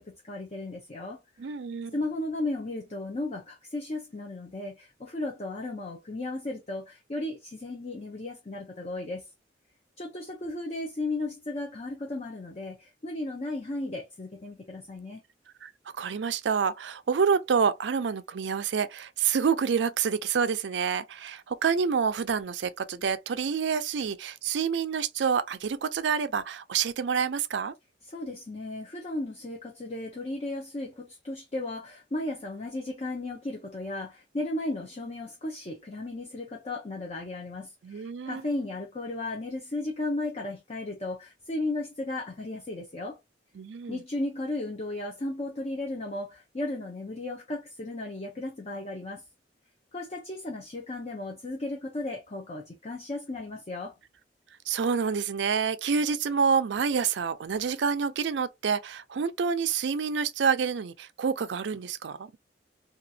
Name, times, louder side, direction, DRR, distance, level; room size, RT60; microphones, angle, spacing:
voice 1, 0.0-1.2 1.9-9.3 10.0-15.2 28.1-43.2 43.9-49.2 49.9-53.9, left 2 dB, 35° left, 0.7 m, -35 dB
voice 2, 1.4-1.9 15.6-15.7 16.0-27.7 37.8-38.4 43.6-44.0 54.7-62.4, right 6 dB, 85° right, 0.4 m, -28 dB
2.9 x 2.4 x 2.6 m
head